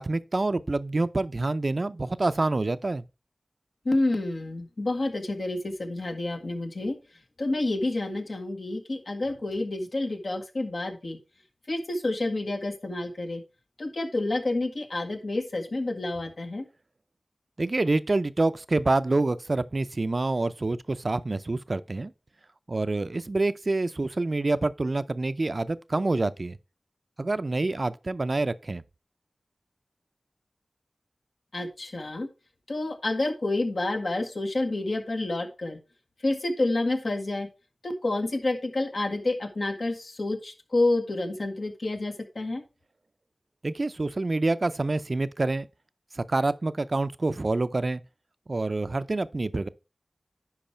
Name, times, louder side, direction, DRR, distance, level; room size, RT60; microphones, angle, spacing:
voice 1, 0.0-3.0 17.6-22.1 22.7-26.6 27.2-28.8 43.6-45.7 46.1-48.0 48.5-49.7, right 2 dB, 55° right, 0.5 m, -27 dB
voice 2, 3.8-7.0 7.4-11.2 11.7-13.4 13.8-16.7 31.5-32.3 32.7-35.8 36.2-37.5 37.8-42.6, left 2 dB, 70° left, 1.6 m, -29 dB
10.5 x 4.7 x 4.3 m
wide cardioid pair, 55°, 0 cm